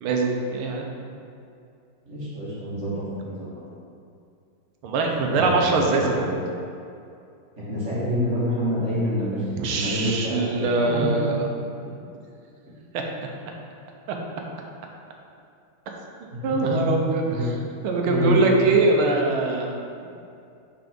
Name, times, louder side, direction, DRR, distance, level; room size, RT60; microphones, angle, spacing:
voice 1, 0.0-0.9 4.8-6.3 9.6-11.4 12.9-13.0 14.1-14.2 15.9-16.0 16.4-17.2 17.8-19.7, right 3 dB, 85° right, 1 dB, 1.7 m, -22 dB
voice 2, 2.0-3.5 5.3-6.4 7.6-11.4 16.3-17.0 17.3-17.5 18.0-18.4, equal, 35° right, -9 dB, 2.0 m, -27 dB
6.0 x 4.8 x 5.2 m, 2.5 s
omnidirectional pair, 2.3 m